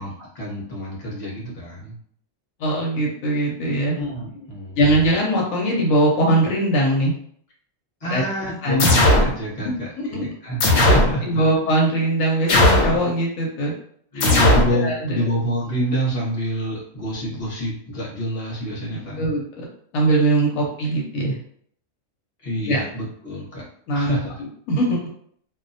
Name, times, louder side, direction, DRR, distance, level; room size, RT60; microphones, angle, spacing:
voice 1, 0.0-1.9 3.9-4.8 8.0-11.5 12.5-12.6 14.1-19.3 20.5-20.6 22.4-23.6 23.9-24.4, equal, 30° left, -5 dB, 0.7 m, -27 dB
voice 2, 2.6-3.9 4.8-7.1 8.1-8.2 8.6-8.9 9.6-10.3 11.2-13.7 14.4-15.2 19.2-19.6 19.9-21.3 22.7-22.8 23.9-25.1, right 1 dB, 85° left, -2 dB, 1.0 m, -21 dB
sound 1, 8.8-9.3 10.6-11.1 12.5-13.0 14.2-14.7, left 1 dB, 65° left, 0.8 m, -16 dB
2.3 x 2.1 x 2.6 m, 0.63 s
omnidirectional pair, 1.4 m